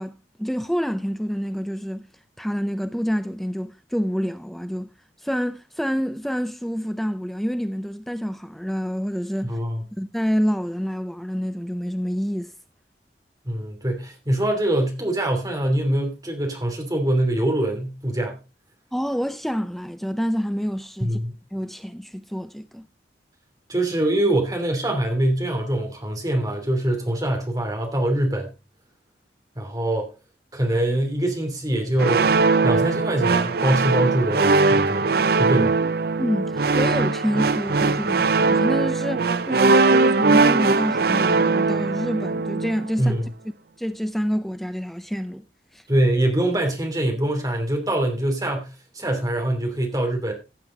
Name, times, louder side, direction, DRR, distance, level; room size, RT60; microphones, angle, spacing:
voice 1, 0.0-2.1 2.4-4.9 5.2-9.6 10.0-12.5 18.9-21.2 21.5-22.9 35.5-35.9 36.2-43.1 43.8-45.4 45.7-45.8, equal, ahead, 0.5 m, -27 dB
voice 2, 9.4-9.8 13.4-18.4 21.0-21.3 23.7-28.5 29.6-30.1 30.5-32.3 32.6-35.1 35.4-35.8 43.0-43.2 45.9-48.7 48.9-50.3, right 1 dB, 20° right, 2.9 m, -23 dB
sound 1, 32.0-42.9, right 3 dB, 60° right, 0.6 m, -20 dB
15.0 x 7.6 x 3.8 m
head